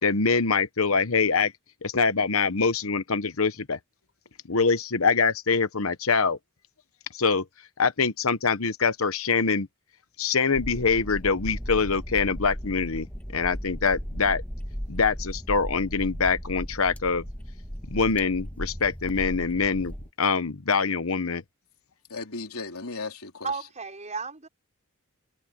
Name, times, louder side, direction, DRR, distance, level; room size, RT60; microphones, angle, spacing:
voice 1, 0.0-1.5 1.8-3.8 4.5-6.4 7.1-7.4 7.8-9.7 10.2-13.1 13.3-14.4 14.9-17.2 17.9-21.4, left 5 dB, 70° left, 1.1 m, -24 dB
sound 1, 10.5-20.1, equal, 5° left, 1.8 m, -36 dB
voice 2, 22.1-23.5, left 3 dB, 85° left, 3.5 m, -36 dB
voice 3, 23.4-24.5, right 4 dB, 35° right, 5.4 m, -33 dB
head